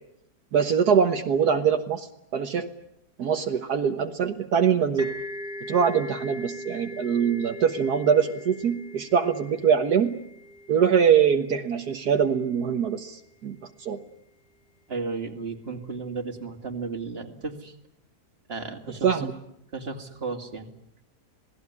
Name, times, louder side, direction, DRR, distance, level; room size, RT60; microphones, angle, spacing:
voice 1, 0.5-2.1 2.3-2.7 3.2-5.1 5.7-10.2 10.7-14.0 19.0-19.3, right 7 dB, 70° right, 6 dB, 1.8 m, -23 dB
sound 1, 5.0-12.5, left 1 dB, ahead, 4.5 m, -41 dB
voice 2, 14.9-17.8 18.5-19.1 19.7-20.7, right 4 dB, 35° right, 5 dB, 2.7 m, -34 dB
27.0 x 19.0 x 9.7 m, 0.79 s
omnidirectional pair, 1.7 m